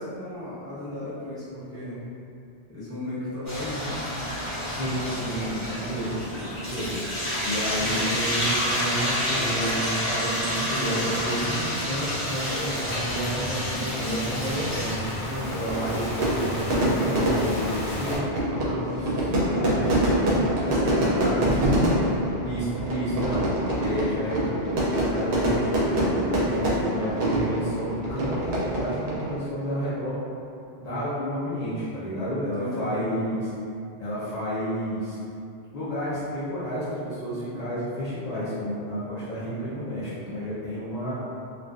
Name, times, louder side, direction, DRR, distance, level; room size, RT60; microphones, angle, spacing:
voice 1, 0.0-2.1 2.7-4.1 20.6-21.5 32.5-33.2, left 1 dB, 5° left, -13 dB, 0.7 m, -33 dB
sound 1, 3.4-14.9, equal, 30° left, 0.8 m, -29 dB
sound 2, 4.4-4.6 5.0-5.7 6.3-6.7 7.8-8.4 9.2-18.2, left 1 dB, 85° left, 0.9 m, -34 dB
voice 2, 4.7-7.0 7.4-15.0 15.4-18.2 18.5-21.5 22.4-30.2 30.8-33.5 34.0-35.2 35.7-41.1, equal, 55° left, -11 dB, 0.4 m, -31 dB
Fire / Fireworks, 15.3-29.4, right 1 dB, 65° right, 0.7 m, -25 dB
2.4 x 2.2 x 2.3 m, 2.6 s
omnidirectional pair, 1.2 m